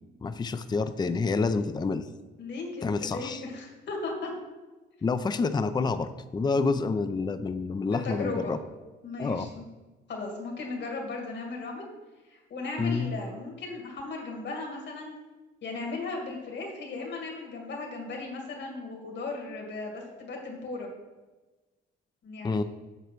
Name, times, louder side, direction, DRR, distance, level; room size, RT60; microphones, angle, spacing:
voice 1, 0.2-2.0 2.8-3.4 5.0-8.6 9.2-9.5 12.8-13.1 22.4-22.6, left 4 dB, 20° left, 10 dB, 0.5 m, -28 dB
voice 2, 2.4-4.3 7.9-8.5 9.0-9.6 10.1-11.9 12.3-15.1 15.6-20.9 22.2-22.6, left 3 dB, 65° left, 0 dB, 2.3 m, -36 dB
8.2 x 6.3 x 4.6 m, 1.2 s
cardioid pair, 90°, 20 cm